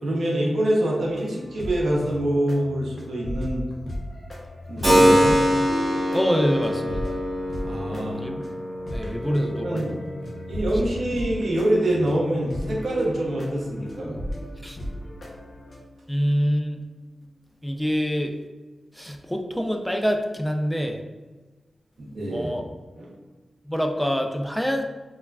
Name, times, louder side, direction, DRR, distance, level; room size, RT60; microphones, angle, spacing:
voice 1, 0.0-3.6 4.7-5.4 7.6-8.2 9.5-9.9 10.5-14.2 22.0-22.5 23.0-23.1, right 1 dB, 70° right, -3 dB, 0.6 m, -25 dB
sound 1, 0.9-15.8, equal, 50° left, 0.6 m, -36 dB
Keyboard (musical), 4.8-13.4, equal, 30° right, 1.1 m, -25 dB
voice 2, 6.1-7.2 8.2-8.4 8.9-10.3 14.6-14.8 16.1-16.8 17.6-18.3 18.9-21.0 22.3-22.6 23.7-24.8, equal, 5° left, 3 dB, 0.3 m, -25 dB
3.0 x 2.3 x 2.2 m, 1.3 s
cardioid pair, 65°, 0 cm